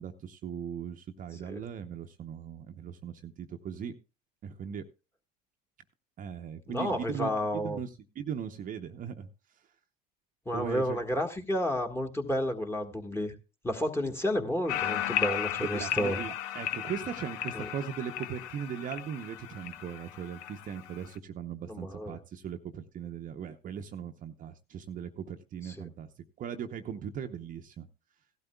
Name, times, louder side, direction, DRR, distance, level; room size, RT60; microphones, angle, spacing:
voice 1, 0.0-3.9 4.4-4.8 6.2-7.9 8.2-9.3 10.5-11.0 15.6-26.1 26.4-27.9, right 8 dB, 40° right, 0.8 m, -39 dB
voice 2, 6.7-7.8 10.4-13.3 13.6-16.2 17.5-17.7 21.7-22.2 25.6-25.9, left 1 dB, 10° left, 1.6 m, -31 dB
sound 1, 14.7-21.2, left 12 dB, 75° left, 0.8 m, -35 dB
16.5 x 12.0 x 2.3 m
hypercardioid pair, 80°, 20 cm